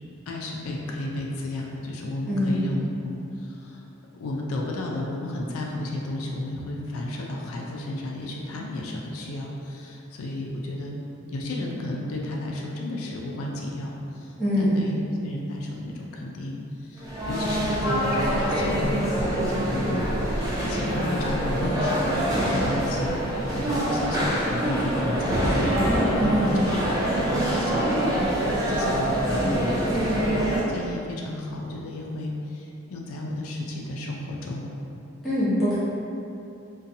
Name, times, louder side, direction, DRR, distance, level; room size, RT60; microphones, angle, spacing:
voice 1, 0.3-3.9 4.1-11.0 11.3-23.2 23.5-28.4 28.7-30.3 30.7-34.7, left 1 dB, 90° left, -1 dB, 0.4 m, -33 dB
voice 2, 2.3-2.6 14.4-14.8 26.2-26.7 35.2-35.8, equal, ahead, -14 dB, 0.7 m, -23 dB
sound 1, 17.0-30.6, right 1 dB, 15° right, 0.3 m, -25 dB
2.6 x 2.2 x 2.6 m, 2.7 s
head